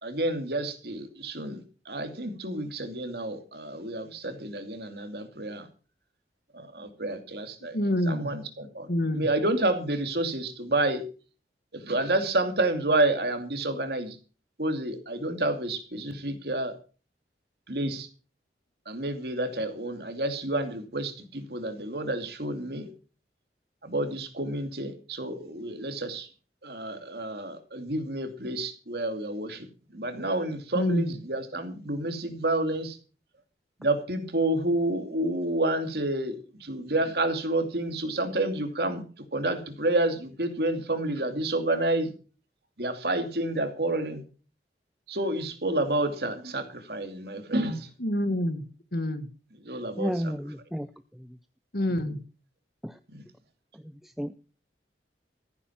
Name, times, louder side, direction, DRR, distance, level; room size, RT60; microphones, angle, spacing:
voice 1, 0.0-5.7 6.5-8.9 9.1-11.0 11.7-14.2 14.6-16.8 17.7-18.1 18.9-22.9 23.8-26.3 26.6-29.7 29.9-33.0 33.8-39.0 39.3-42.1 42.8-44.2 45.1-47.9 49.7-50.3 53.1-53.2, right 2 dB, 60° right, 7 dB, 2.6 m, -29 dB
voice 2, 7.7-8.3 8.9-9.3 30.7-31.2 48.0-48.6 48.9-49.3 51.7-52.2, left 1 dB, 60° left, 10 dB, 1.8 m, -27 dB
voice 3, 50.0-50.9 52.8-52.9 54.2-54.4, equal, ahead, 10 dB, 0.5 m, -31 dB
14.5 x 9.8 x 5.9 m, 0.38 s
head